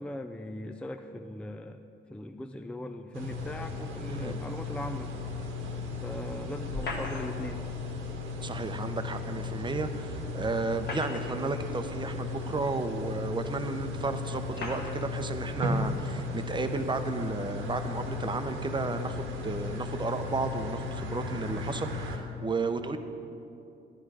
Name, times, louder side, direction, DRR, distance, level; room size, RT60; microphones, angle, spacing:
voice 1, 0.0-1.8 2.1-5.1 6.0-7.6, left 1 dB, 5° left, 6 dB, 0.4 m, -39 dB
sound 1, 3.1-22.2, left 3 dB, 90° right, 1.4 m, -36 dB
sound 2, 6.7-7.6 9.3-9.4 10.6-11.5 12.4-12.5 13.5-13.6 14.5-15.0, left 2 dB, 55° left, 1.4 m, -38 dB
voice 2, 8.4-23.0, right 3 dB, 25° right, 8 dB, 0.7 m, -33 dB
10.5 x 10.0 x 4.9 m, 2.7 s
cardioid pair, 90°, 20 cm